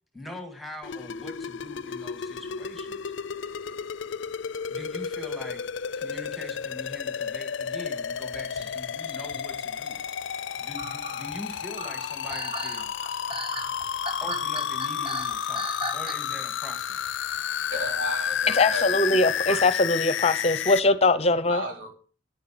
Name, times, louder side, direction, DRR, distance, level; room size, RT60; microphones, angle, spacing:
voice 1, 0.1-3.1 4.7-5.6 5.9-10.0 10.6-12.9 14.2-17.2 19.0-19.2, left 1 dB, ahead, 1.9 m, -42 dB
sound 1, 0.8-20.8, left 8 dB, 70° left, 0.5 m, -31 dB
sound 2, 8.3-16.5 16.8-17.2 17.8-17.9 18.3-18.6, right 1 dB, 25° right, 1.6 m, -38 dB
voice 2, 17.7-19.6 21.5-21.9, equal, 75° right, 4.6 m, -34 dB
voice 3, 18.5-21.6, left 2 dB, 30° left, 0.7 m, -22 dB
10.0 x 9.3 x 7.5 m
head